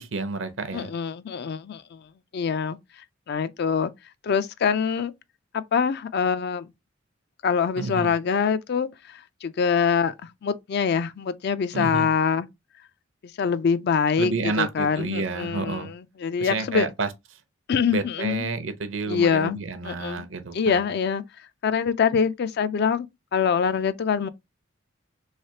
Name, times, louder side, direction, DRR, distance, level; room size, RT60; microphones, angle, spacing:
voice 1, 0.0-0.9 7.8-8.1 11.7-12.1 14.2-15.9 16.4-17.1 17.9-20.9, right 3 dB, 65° right, 0.6 m, -30 dB
voice 2, 0.7-2.0 2.3-2.8 3.3-3.9 4.2-5.1 5.5-6.7 7.4-12.5 13.4-16.9 17.7-18.5 19.1-20.2 20.5-21.2 21.6-23.1 23.3-24.3, left 6 dB, 55° left, 0.4 m, -24 dB
3.2 x 3.1 x 2.7 m
head